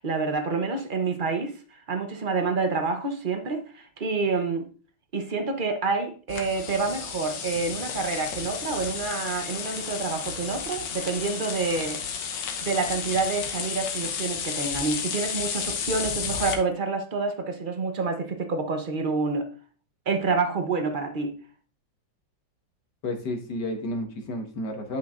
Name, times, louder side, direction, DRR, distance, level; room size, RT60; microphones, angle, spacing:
voice 1, 0.0-4.7 5.1-12.0 12.6-19.5 20.1-21.3, right 4 dB, 40° right, 0.7 m, -28 dB
sound 1, 6.3-16.5, left 7 dB, 85° left, 1.7 m, -32 dB
voice 2, 23.0-25.0, left 1 dB, 65° left, 1.9 m, -31 dB
10.0 x 5.9 x 2.5 m
omnidirectional pair, 2.0 m